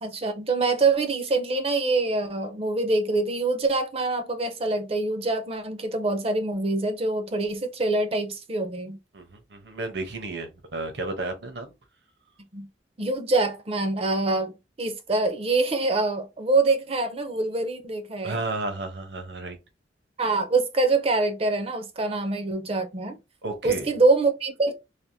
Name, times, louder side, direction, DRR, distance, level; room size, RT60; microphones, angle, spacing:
voice 1, 0.0-9.0 12.5-12.7 13.0-18.4 20.2-23.2 23.6-24.7, right 3 dB, 35° right, 0.5 m, -25 dB
voice 2, 9.1-11.7 18.2-19.6 23.4-23.9, right 2 dB, 70° right, 0.9 m, -33 dB
3.4 x 2.4 x 2.7 m
head